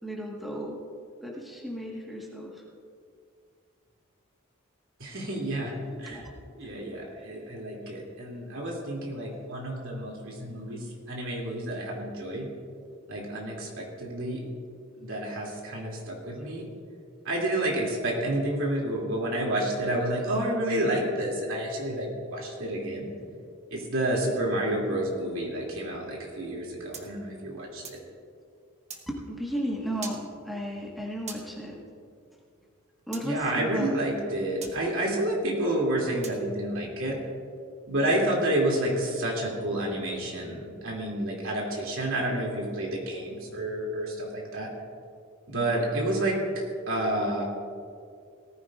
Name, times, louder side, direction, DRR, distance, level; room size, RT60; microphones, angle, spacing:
voice 1, 0.0-0.8 1.2-2.6 5.7-6.3 29.1-31.8 33.1-34.0 34.6-34.7, equal, ahead, -4 dB, 1.6 m, -35 dB
voice 2, 5.0-6.3 6.6-12.5 13.1-14.4 15.0-16.7 17.2-23.1 23.7-28.0 33.2-37.2 37.9-44.7 45.5-47.4, right 1 dB, 65° right, -2 dB, 2.9 m, -29 dB
sound 1, 26.9-28.1 28.9-29.0 30.0-30.2 31.3-31.4 33.1-33.3 34.6-34.8 36.2-36.4, right 5 dB, 30° right, 1.3 m, -41 dB
18.5 x 14.5 x 2.6 m, 2.3 s
head